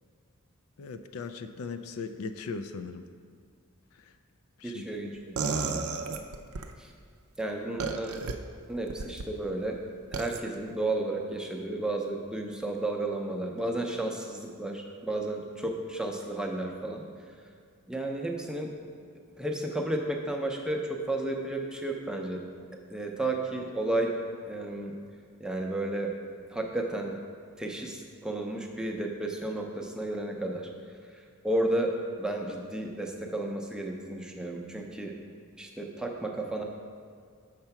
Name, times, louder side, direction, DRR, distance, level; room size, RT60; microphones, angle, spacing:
voice 1, 0.8-3.1 4.0-4.1 4.6-5.1, left 4 dB, 70° left, 9 dB, 0.4 m, -39 dB
voice 2, 4.6-5.8 6.8-6.9 7.4-8.2 8.7-9.8 10.1-17.0 17.9-18.7 19.4-22.4 22.9-24.1 24.5-24.9 25.4-26.1 26.5-27.2 27.6-30.7 31.4-31.9 32.2-35.1 35.6-36.6, right 2 dB, 5° right, 1 dB, 0.5 m, -32 dB
sound 1, 5.4-6.7 7.8-8.3 8.9-9.3 10.1-10.4, right 4 dB, 80° right, 0.5 m, -32 dB
6.6 x 4.5 x 5.8 m, 2.1 s
head